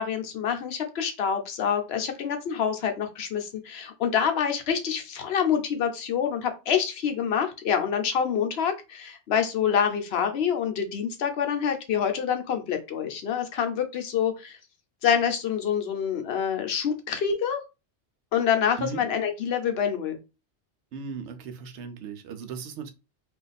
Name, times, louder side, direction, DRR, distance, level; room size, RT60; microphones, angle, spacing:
voice 1, 0.0-14.6 15.0-17.6 18.3-20.2, left 8 dB, 70° left, 0.8 m, -26 dB
voice 2, 20.9-22.9, right 6 dB, 80° right, 0.9 m, -37 dB
2.5 x 2.3 x 3.9 m
omnidirectional pair, 1.2 m